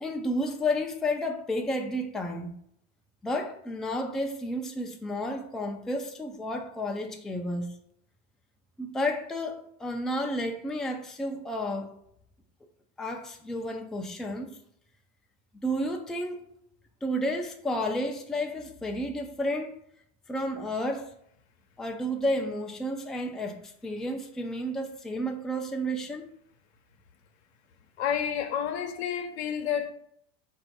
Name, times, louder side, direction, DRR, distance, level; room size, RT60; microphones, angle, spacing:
voice 1, 0.0-2.5 3.2-7.7 8.8-11.9 13.0-14.5 15.6-16.5 17.0-19.8 20.3-21.1 21.8-26.3, equal, ahead, 0.4 m, -31 dB
voice 2, 28.0-29.9, left 8 dB, 85° left, 0.8 m, -30 dB
4.6 x 2.6 x 4.4 m
supercardioid pair, 120°, 32 cm